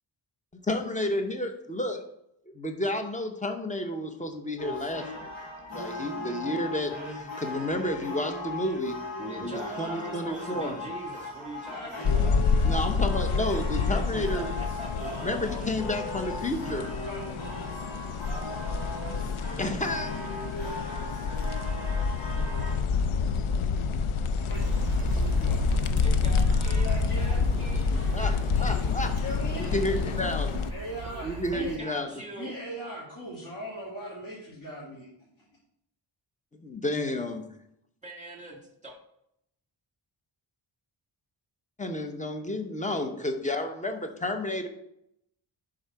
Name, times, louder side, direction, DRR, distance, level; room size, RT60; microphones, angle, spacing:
voice 1, 0.6-2.0 2.5-5.3 5.7-9.0 9.4-10.7 12.6-14.5 15.2-16.8 19.6-20.1 28.1-28.3 28.6-29.1 29.6-30.5 31.2-32.1 36.5-37.5 41.8-44.7, left 1 dB, 15° left, 5 dB, 0.9 m, -31 dB
sound 1, 4.6-22.8, left 1 dB, 60° left, 2.8 m, -38 dB
voice 2, 9.2-12.4 13.7-14.2 14.6-15.4 26.0-29.3 29.7-30.7 31.0-31.1 31.5-32.5 38.0-39.0, right 1 dB, 15° right, 0 dB, 1.9 m, -43 dB
voice 3, 11.7-12.0 16.4-16.7 17.0-17.4 19.7-19.8 20.6-20.8 24.4-24.7 25.2-25.7 26.7-27.4 29.2-29.8 30.7-31.8 32.3-35.3, equal, 40° left, -7 dB, 2.3 m, -40 dB
sound 2, 12.0-30.7, left 5 dB, 80° left, 0.6 m, -28 dB
sound 3, 24.5-31.8, right 6 dB, 50° right, 0.6 m, -37 dB
11.0 x 3.8 x 4.7 m, 0.77 s
wide cardioid pair, 130°, 50 cm